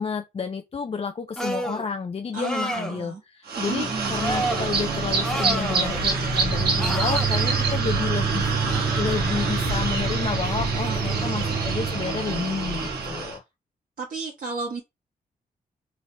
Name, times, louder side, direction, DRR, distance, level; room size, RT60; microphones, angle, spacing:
voice 1, 0.0-8.5 9.0-13.4, left 5 dB, 40° left, 0.5 m, -30 dB
sound 1, 1.4-1.8 2.3-3.0 4.1-4.7 5.2-6.1 6.8-7.3 8.6-9.1, right 1 dB, 5° left, 1.1 m, -30 dB
voice 2, 2.3-3.2 3.6-4.2 10.8-11.6 14.0-14.8, right 4 dB, 60° right, 1.1 m, -33 dB
sound 2, 3.5-13.4, right 4 dB, 85° right, 1.2 m, -25 dB
3.8 x 3.3 x 2.2 m
cardioid pair, 55°, 16 cm